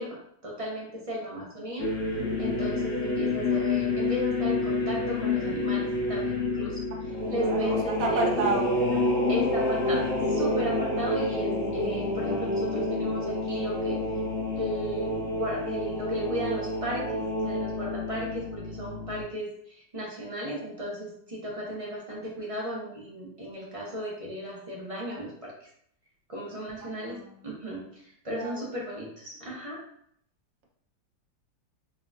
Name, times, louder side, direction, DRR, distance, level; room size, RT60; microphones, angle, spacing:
voice 1, 0.0-1.9 2.4-6.8 7.3-8.2 8.9-9.0 9.3-14.0 14.6-25.7 26.3-27.2 27.4-29.8, equal, 30° right, -4 dB, 0.6 m, -35 dB
sound 1, 1.8-19.2, left 2 dB, 65° left, 1.4 m, -28 dB
voice 2, 7.3-8.7 27.0-27.2 28.3-28.6, right 2 dB, 55° right, -2 dB, 1.0 m, -30 dB
3.8 x 3.3 x 2.5 m, 0.68 s
omnidirectional pair, 2.0 m